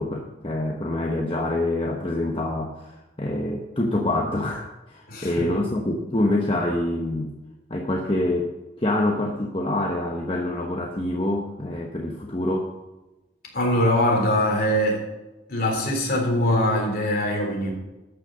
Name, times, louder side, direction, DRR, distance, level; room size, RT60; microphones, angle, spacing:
voice 1, 0.0-7.3 7.7-12.7, left 1 dB, 30° left, 0 dB, 1.0 m, -26 dB
voice 2, 5.1-5.5 13.5-15.0 15.5-17.7, left 1 dB, 50° left, 0 dB, 3.6 m, -22 dB
12.5 x 6.4 x 6.6 m, 1.1 s
head